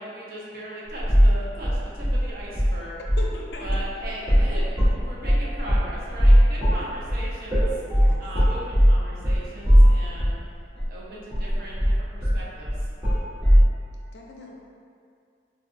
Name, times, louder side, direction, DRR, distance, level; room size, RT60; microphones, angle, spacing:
voice 1, 0.0-3.0 3.6-10.4 10.9-12.9, right 1 dB, 55° right, -6 dB, 0.7 m, -38 dB
sound 1, 1.0-1.4 1.6-2.8 3.0-3.3 3.7-10.4 10.8-10.9 11.3-13.7, equal, 10° right, 1.0 m, -19 dB
voice 2, 3.2-3.7 7.9-8.2 14.1-14.5, left 2 dB, 65° left, -1 dB, 0.4 m, -38 dB
3.8 x 2.3 x 2.6 m, 2.3 s
head